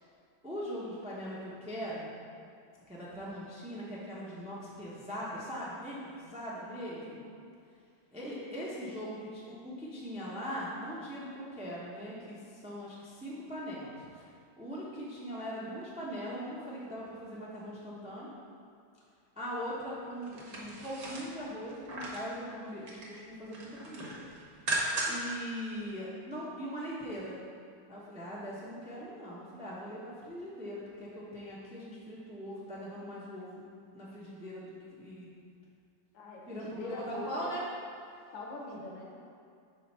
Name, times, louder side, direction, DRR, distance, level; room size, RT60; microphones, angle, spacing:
voice 1, 0.4-2.1 2.9-7.2 8.1-14.3 14.6-18.4 19.4-24.2 25.1-27.4 27.9-33.6 33.9-35.3 36.5-37.6, equal, 10° right, -7 dB, 0.3 m, -41 dB
voice 2, 7.0-7.4 36.1-37.6 38.3-39.1, left 2 dB, 70° left, -2 dB, 1.7 m, -43 dB
sound 1, 20.2-22.3 22.7-23.2 23.5-25.3 25.7-25.8, right 2 dB, 50° right, 1.3 m, -36 dB
4.9 x 4.3 x 5.9 m, 2.4 s
omnidirectional pair, 2.3 m